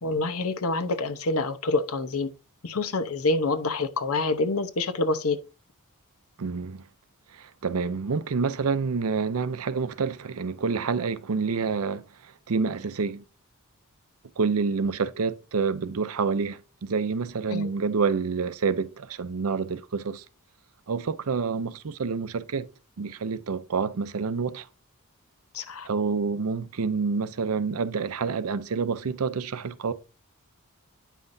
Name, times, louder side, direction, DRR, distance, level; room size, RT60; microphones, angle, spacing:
voice 1, 0.0-2.3 2.6-5.4 17.5-17.7 25.5-25.9, left 3 dB, 75° left, 0.9 m, -27 dB
voice 2, 6.4-6.8 7.4-12.0 12.5-13.2 14.4-20.2 20.9-22.7 23.0-24.7 25.8-29.9, right 5 dB, 75° right, 0.6 m, -28 dB
9.1 x 5.7 x 2.7 m
head